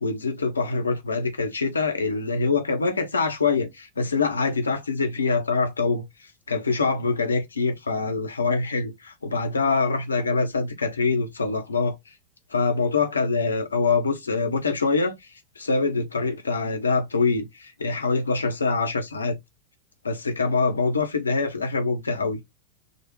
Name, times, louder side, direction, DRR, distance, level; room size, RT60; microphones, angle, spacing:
voice 1, 0.0-6.0 6.5-12.0 12.5-15.2 15.6-19.4 20.0-22.4, left 4 dB, 75° left, 0.9 m, -24 dB
6.6 x 2.4 x 3.1 m
figure-of-eight pair, 90°, 0 cm